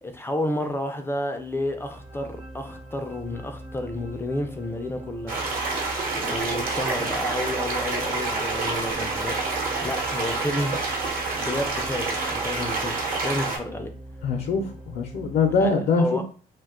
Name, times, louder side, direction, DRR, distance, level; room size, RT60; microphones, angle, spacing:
voice 1, 0.0-5.6 6.1-9.4 9.8-10.8 11.4-13.9 15.6-15.7 16.0-16.2, left 1 dB, 15° left, 0.4 m, -30 dB
sound 1, 1.3-15.7, right 1 dB, 30° right, 0.7 m, -42 dB
sound 2, 5.3-13.6, right 3 dB, 55° right, 0.9 m, -28 dB
voice 2, 14.2-16.2, left 4 dB, 65° left, 0.5 m, -23 dB
2.4 x 2.2 x 3.5 m
cardioid pair, 110°, 17 cm